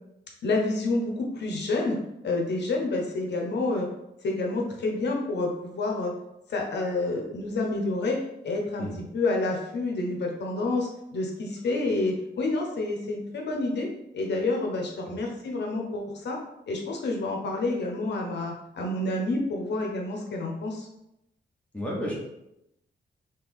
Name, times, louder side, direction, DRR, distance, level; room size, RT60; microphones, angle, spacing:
voice 1, 0.4-2.0 2.2-3.9 4.2-6.1 6.5-8.9 9.1-13.9 14.1-16.4 16.7-20.9, left 2 dB, 65° left, 0 dB, 0.7 m, -28 dB
voice 2, 21.7-22.1, equal, 5° left, -4 dB, 0.9 m, -31 dB
3.2 x 2.9 x 3.5 m, 0.84 s
wide cardioid pair, 170°, 19 cm